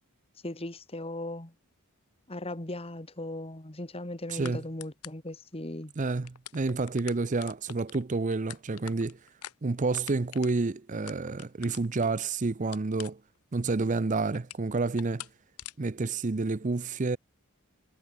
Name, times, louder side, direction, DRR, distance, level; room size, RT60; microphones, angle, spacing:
voice 1, 0.4-1.5 2.3-5.9, left 1 dB, 25° left, 1.8 m, -38 dB
sound 1, 2.6-2.8 4.4-4.5 4.8-5.3 5.8-5.9 6.2-12.2 12.7-13.5 13.9-14.7 15.0-15.3 15.6-15.7, left 11 dB, 90° left, 1.2 m, -44 dB
voice 2, 4.3-4.6 6.0-9.2 9.6-13.2 13.5-15.3 15.8-17.2, right 3 dB, 35° right, 0.5 m, -29 dB
head